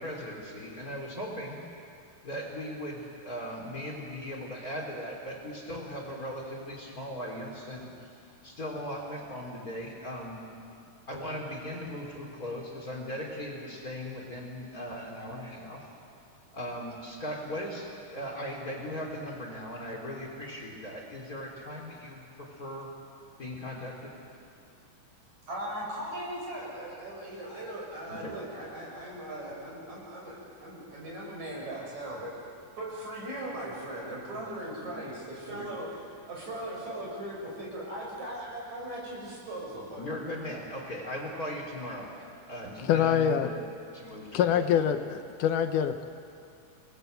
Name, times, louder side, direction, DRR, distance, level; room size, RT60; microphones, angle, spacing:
voice 1, 0.0-1.6 2.2-8.1 8.4-10.4 11.1-15.8 16.5-22.9 23.4-24.1 28.1-28.3 34.3-34.5 34.8-34.9 35.5-35.7 40.0-43.6 43.9-44.9, equal, 25° left, -1 dB, 3.7 m, -38 dB
voice 2, 25.5-32.3 32.8-35.9 36.3-40.1, right 1 dB, 55° right, -3 dB, 7.9 m, -39 dB
voice 3, 42.8-43.5 44.3-46.1, left 9 dB, 75° left, 8 dB, 2.3 m, -25 dB
28.5 x 20.0 x 8.1 m, 2.4 s
omnidirectional pair, 3.8 m